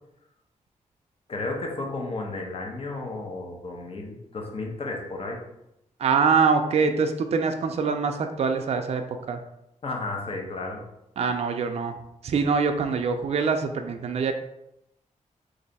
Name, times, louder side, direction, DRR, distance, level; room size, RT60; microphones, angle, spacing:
voice 1, 1.3-5.4 9.8-10.8, left 2 dB, 45° left, 0 dB, 0.9 m, -33 dB
voice 2, 6.0-9.0 9.3-9.4 11.2-11.9 12.2-14.3, right 5 dB, 50° right, 6 dB, 0.4 m, -24 dB
3.1 x 2.6 x 4.0 m, 0.83 s
wide cardioid pair, 100°, 13 cm